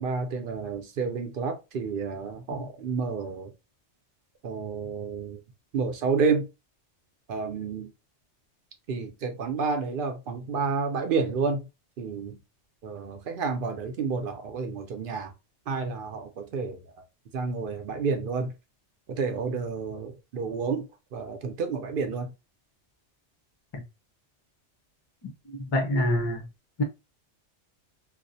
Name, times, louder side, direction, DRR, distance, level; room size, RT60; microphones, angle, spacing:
voice 1, 0.0-3.5 4.4-5.4 5.7-6.5 7.3-7.9 8.9-11.7 12.0-12.4 12.8-15.3 15.7-16.8 17.3-18.5 19.1-22.3, right 5 dB, 60° right, 0.6 m, -30 dB
voice 2, 25.6-26.5 26.8-26.9, left 1 dB, 40° left, 0.4 m, -26 dB
2.3 x 2.0 x 2.6 m
omnidirectional pair, 1.2 m